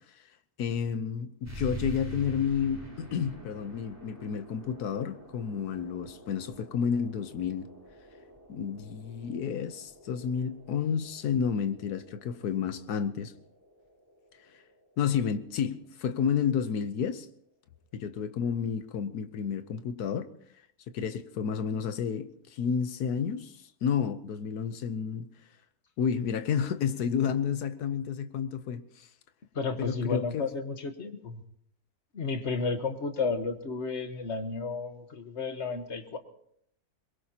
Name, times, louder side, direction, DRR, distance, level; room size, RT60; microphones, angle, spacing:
voice 1, 0.6-7.7 8.5-13.3 15.0-17.3 17.9-20.3 20.9-25.3 26.0-29.1 29.8-30.5, left 7 dB, 80° left, 1.4 m, -31 dB
sound 1, 1.4-16.5, right 2 dB, 10° right, 3.6 m, -47 dB
voice 2, 29.5-31.4 32.1-36.2, left 4 dB, 50° left, 1.5 m, -32 dB
22.5 x 21.5 x 2.9 m
omnidirectional pair, 1.6 m